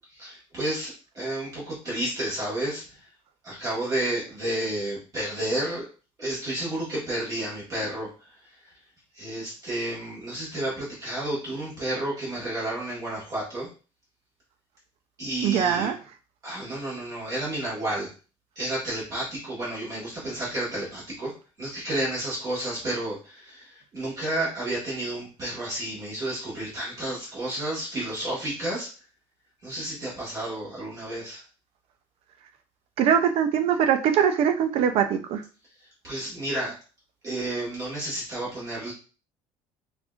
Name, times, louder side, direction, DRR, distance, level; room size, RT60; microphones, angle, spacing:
voice 1, 0.2-3.0 3.4-5.9 6.2-8.7 9.1-13.7 15.2-15.9 16.4-18.1 18.5-28.9 29.6-31.4 36.0-36.7 37.2-38.9, right 1 dB, 30° right, -7 dB, 1.6 m, -31 dB
voice 2, 15.4-15.9 33.0-35.4, right 8 dB, 55° right, 7 dB, 0.6 m, -22 dB
5.2 x 2.6 x 2.4 m, 0.35 s
cardioid pair, 160°, 12 cm